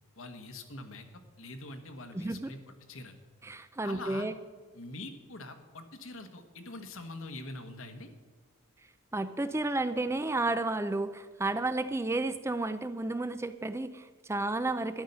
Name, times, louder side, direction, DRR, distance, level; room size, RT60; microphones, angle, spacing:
voice 1, 0.2-1.0 1.4-3.2 3.8-4.3 4.7-8.1, left 2 dB, 75° left, 7 dB, 1.4 m, -44 dB
voice 2, 2.1-2.5 3.4-4.3 9.1-15.0, right 2 dB, 10° right, 11 dB, 0.4 m, -32 dB
12.5 x 10.5 x 5.5 m, 1.4 s
head